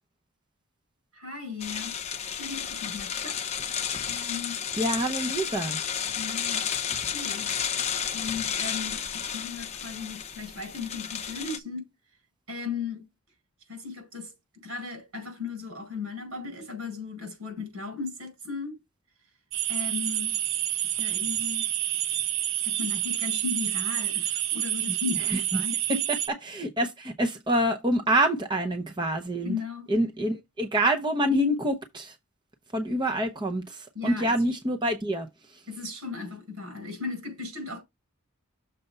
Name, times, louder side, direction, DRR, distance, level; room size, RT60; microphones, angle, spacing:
voice 1, 1.1-1.9 2.2-3.6 4.1-4.6 6.1-6.7 7.1-7.5 8.1-11.8 12.5-13.0 13.7-14.3 14.6-18.8 19.7-20.3 20.9-21.7 22.6-26.0 29.4-29.9 33.9-34.4 35.7-37.8, left 5 dB, 75° right, 5.1 m, -36 dB
sound 1, 1.6-11.6, left 8 dB, 30° left, 0.6 m, -32 dB
voice 2, 4.8-5.8 25.1-25.6 26.4-29.6 29.9-32.1 32.7-35.6, right 1 dB, 20° right, 0.7 m, -27 dB
sound 2, 19.5-26.3, right 12 dB, 55° right, 0.6 m, -28 dB
6.8 x 4.2 x 5.4 m
head